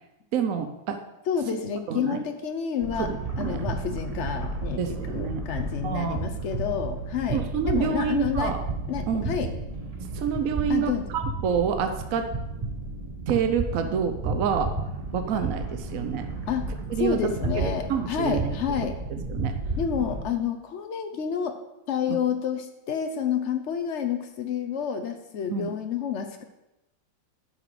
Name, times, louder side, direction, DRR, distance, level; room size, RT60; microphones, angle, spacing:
voice 1, 0.3-1.0 1.9-2.2 3.0-3.6 4.8-5.4 5.8-6.2 7.3-8.6 9.1-9.4 10.1-12.3 13.3-14.7 15.1-16.3 16.9-17.2 17.6-18.5 19.1-19.6 25.5-25.7, right 7 dB, 65° right, 6 dB, 0.8 m, -28 dB
voice 2, 1.3-3.1 3.4-8.5 8.9-9.5 10.7-11.1 16.5-16.7 17.0-18.9 19.8-21.6 21.9-26.4, left 7 dB, 85° left, 6 dB, 0.6 m, -29 dB
sound 1, 2.8-20.2, right 3 dB, 25° right, 0.8 m, -32 dB
10.5 x 6.1 x 4.9 m, 0.95 s
omnidirectional pair, 2.2 m